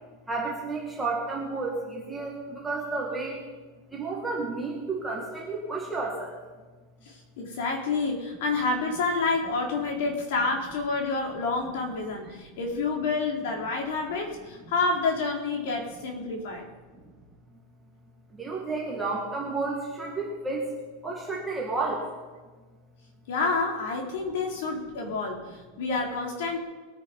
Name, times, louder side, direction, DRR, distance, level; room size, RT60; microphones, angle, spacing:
voice 1, 0.3-3.4 3.9-6.4 12.2-12.6 16.9-17.0 18.3-20.7 21.0-22.0, right 3 dB, 5° right, -4 dB, 2.0 m, -31 dB
voice 2, 7.1-16.7 23.3-26.6, left 3 dB, 60° left, 1 dB, 3.9 m, -28 dB
21.5 x 9.9 x 5.4 m, 1.3 s
supercardioid pair, 175°, 0 cm